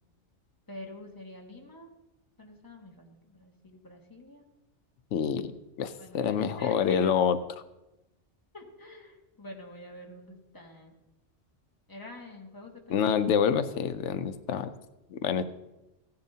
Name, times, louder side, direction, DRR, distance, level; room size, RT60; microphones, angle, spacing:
voice 1, 0.7-1.9 2.4-4.4 6.0-7.1 8.5-10.9 11.9-13.1, left 1 dB, 20° left, 0 dB, 1.5 m, -46 dB
voice 2, 5.1-5.5 5.8-7.4 12.9-14.7 15.1-15.4, left 7 dB, 90° left, 11 dB, 0.9 m, -27 dB
15.5 x 10.5 x 2.8 m, 0.95 s
omnidirectional pair, 1.2 m